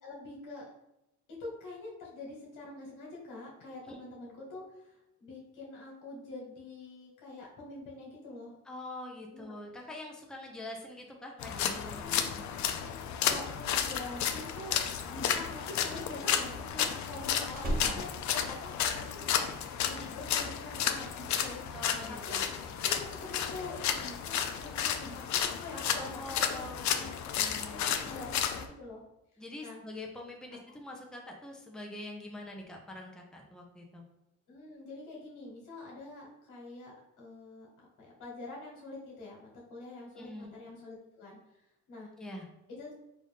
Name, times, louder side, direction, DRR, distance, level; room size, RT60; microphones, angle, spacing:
voice 1, 0.0-0.6 1.4-8.6 9.3-9.5 11.9-21.6 22.1-22.4 22.8-27.1 27.7-29.0 29.6-29.8 34.5-42.1 42.7-42.9, left 2 dB, 85° left, -3 dB, 1.4 m, -45 dB
voice 2, 8.6-12.5 17.4-18.0 19.9-20.1 21.7-22.4 23.2-23.3 26.0-28.1 29.4-34.0 40.0-40.5 42.2-42.4, left 1 dB, ahead, 0 dB, 0.7 m, -45 dB
sound 1, 11.4-28.6, left 8 dB, 70° left, 0.5 m, -32 dB
Slam, 15.5-19.4 19.6-20.1, right 1 dB, 30° right, 0.8 m, -39 dB
4.0 x 2.6 x 3.4 m, 0.87 s
cardioid pair, 90°, 30 cm